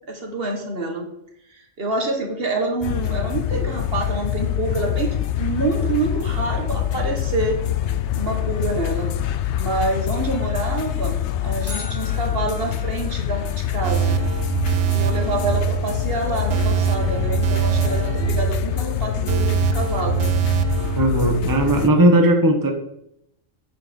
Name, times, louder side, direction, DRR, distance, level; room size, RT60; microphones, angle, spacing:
voice 1, 0.1-1.1 1.5-7.6 8.1-9.1 9.6-14.2 14.9-20.3, right 2 dB, 50° right, 3 dB, 1.7 m, -27 dB
sound 1, 2.8-21.9, left 11 dB, 70° left, 0.9 m, -25 dB
sound 2, 11.7-13.8, left 1 dB, 10° left, 3.0 m, -39 dB
sound 3, 13.8-21.0, right 12 dB, 70° right, 1.0 m, -23 dB
voice 2, 21.0-22.7, right 1 dB, 15° right, 3 dB, 1.1 m, -17 dB
9.2 x 7.7 x 5.3 m, 0.77 s
omnidirectional pair, 1.3 m